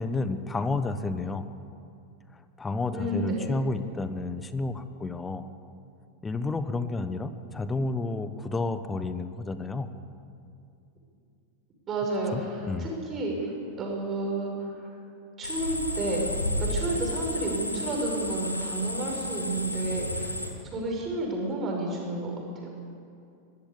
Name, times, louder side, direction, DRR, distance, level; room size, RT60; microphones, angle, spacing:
voice 1, 0.0-1.4 2.3-5.4 6.2-9.9 12.3-12.9, left 3 dB, 15° left, 11 dB, 1.1 m, -31 dB
voice 2, 2.9-3.5 11.9-13.5 13.8-14.9 15.4-16.3 16.6-20.3 20.7-22.7, right 2 dB, 25° right, 0 dB, 5.9 m, -31 dB
sound 1, 15.4-20.5, left 1 dB, 85° left, 2.0 m, -32 dB
22.5 x 15.0 x 8.4 m, 2.5 s
figure-of-eight pair, 90°, 0 cm